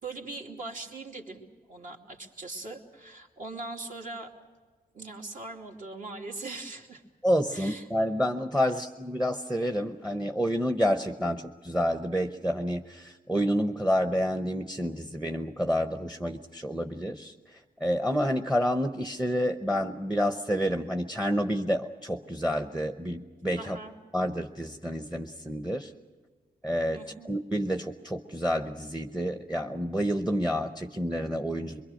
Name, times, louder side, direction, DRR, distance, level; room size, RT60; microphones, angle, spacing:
voice 1, 0.0-4.3 4.9-7.0 7.5-7.9 23.6-23.9 26.9-27.3, right 3 dB, 55° right, 1 dB, 2.7 m, -41 dB
voice 2, 7.2-23.8 24.1-25.9 26.6-31.8, equal, 5° right, 7 dB, 0.9 m, -29 dB
25.0 x 23.0 x 6.5 m, 1.4 s
wide cardioid pair, 130°, 16 cm